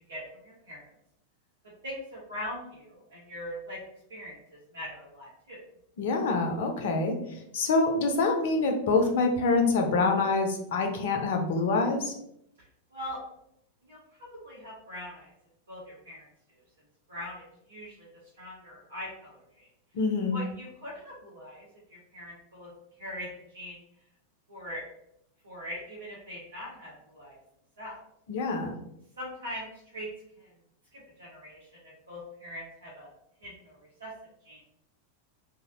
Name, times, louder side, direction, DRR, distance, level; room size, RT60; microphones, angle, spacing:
voice 1, 0.1-0.9 1.8-3.8 4.1-5.6 12.9-13.2 13.8-15.3 15.7-16.6 17.1-18.1 18.4-19.7 20.3-22.7 23.0-23.8 24.5-24.8 25.4-27.4 27.8-28.0 29.2-30.1 30.4-30.5 30.9-33.1 33.4-34.1 34.4-34.6, left 1 dB, 70° right, -7 dB, 0.7 m, -42 dB
voice 2, 6.0-12.1 19.9-20.4 28.3-28.8, left 3 dB, 55° left, 4 dB, 0.4 m, -26 dB
2.5 x 2.0 x 2.5 m, 0.77 s
figure-of-eight pair, 90°, 0 cm